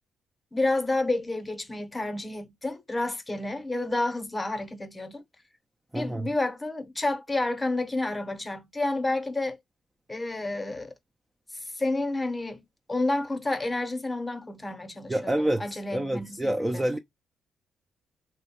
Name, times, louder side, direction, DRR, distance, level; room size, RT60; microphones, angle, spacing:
voice 1, 0.5-5.2 5.9-9.6 10.1-10.9 11.5-16.6, left 2 dB, 15° left, 0.8 m, -30 dB
voice 2, 5.9-6.3 15.1-17.0, right 1 dB, 10° right, 0.4 m, -28 dB
3.0 x 2.0 x 2.8 m
cardioid pair, 90°, 0 cm